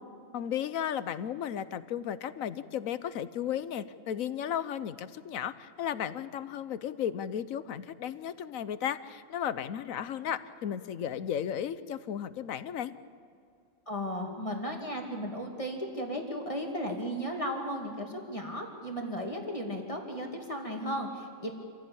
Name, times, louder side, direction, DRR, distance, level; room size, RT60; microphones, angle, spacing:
voice 1, 0.3-12.9, left 9 dB, 80° left, 14 dB, 1.2 m, -34 dB
voice 2, 13.9-21.5, equal, 25° left, 1 dB, 2.4 m, -35 dB
26.5 x 16.0 x 8.7 m, 2.4 s
omnidirectional pair, 1.4 m